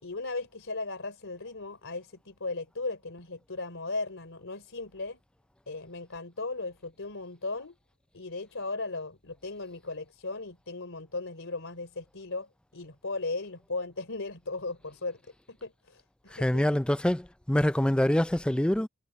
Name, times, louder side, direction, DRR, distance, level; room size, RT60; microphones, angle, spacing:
voice 1, 0.0-5.2 5.7-7.8 8.1-15.2 15.5-16.6, left 3 dB, 65° left, 3.5 m, -37 dB
voice 2, 16.3-18.9, left 1 dB, 5° left, 0.3 m, -25 dB
head